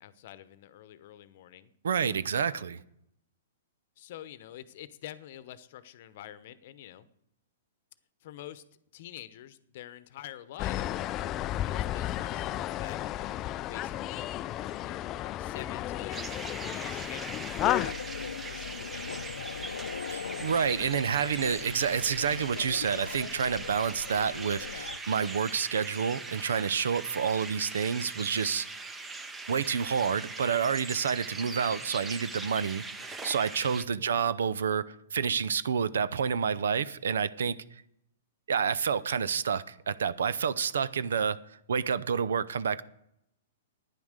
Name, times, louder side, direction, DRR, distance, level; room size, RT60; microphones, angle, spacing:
voice 1, 0.0-1.7 2.5-2.6 4.0-7.1 8.2-8.6 8.9-10.9 11.6-14.2 14.8-16.3 16.5-17.5 18.5-19.3 34.0-34.2, left 12 dB, 55° left, 0.9 m, -47 dB
voice 2, 1.8-2.8 20.1-28.7 29.5-37.6 38.5-41.4 41.7-42.8, right 6 dB, 85° right, 0.6 m, -29 dB
sound 1, 10.6-17.9, left 13 dB, 30° left, 0.3 m, -33 dB
sound 2, 16.1-33.8, right 3 dB, 10° right, 0.8 m, -41 dB
sound 3, 17.6-25.0, left 7 dB, 90° left, 0.6 m, -40 dB
11.0 x 9.8 x 6.5 m
hypercardioid pair, 145°, 0 cm